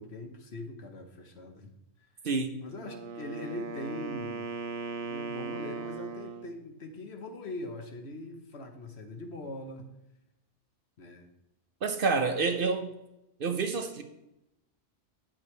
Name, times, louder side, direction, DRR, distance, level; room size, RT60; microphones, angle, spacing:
voice 1, 0.0-1.8 2.6-4.5 5.0-9.9 11.0-11.3, left 2 dB, 65° left, 5 dB, 1.3 m, -41 dB
voice 2, 2.2-2.6 11.8-12.9 13.4-14.0, right 4 dB, 55° right, 7 dB, 0.8 m, -28 dB
Wind instrument woodwind instrument, 2.7-6.5, right 5 dB, 85° right, 1.1 m, -38 dB
9.5 x 7.8 x 3.2 m, 0.88 s
omnidirectional pair, 1.2 m